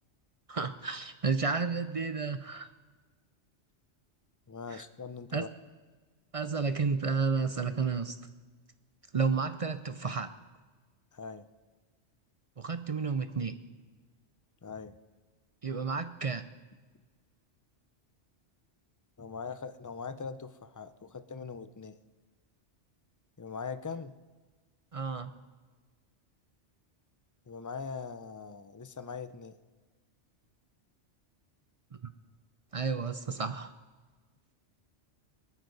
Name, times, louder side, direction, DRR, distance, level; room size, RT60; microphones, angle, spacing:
voice 1, 0.5-2.7 4.7-4.8 5.3-5.4 6.3-8.2 9.1-10.3 12.6-13.6 15.6-16.5 24.9-25.3 32.7-33.7, right 5 dB, 45° right, 11 dB, 0.5 m, -31 dB
voice 2, 4.5-5.5 11.1-11.5 14.6-15.0 19.2-22.0 23.4-24.1 27.5-29.5, left 5 dB, 30° left, 12 dB, 0.3 m, -41 dB
26.0 x 9.4 x 4.0 m, 1.4 s
omnidirectional pair, 1.2 m